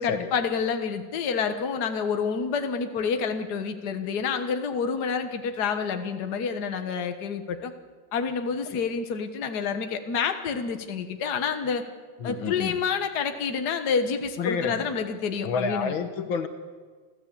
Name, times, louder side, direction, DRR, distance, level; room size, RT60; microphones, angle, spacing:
voice 1, 0.0-7.7 8.1-11.8 12.2-15.9, left 6 dB, 55° left, 7 dB, 1.8 m, -28 dB
voice 2, 12.2-12.8 14.4-14.9 15.4-16.5, left 5 dB, 75° left, 8 dB, 2.0 m, -29 dB
28.0 x 14.0 x 8.5 m, 1.5 s
omnidirectional pair, 2.2 m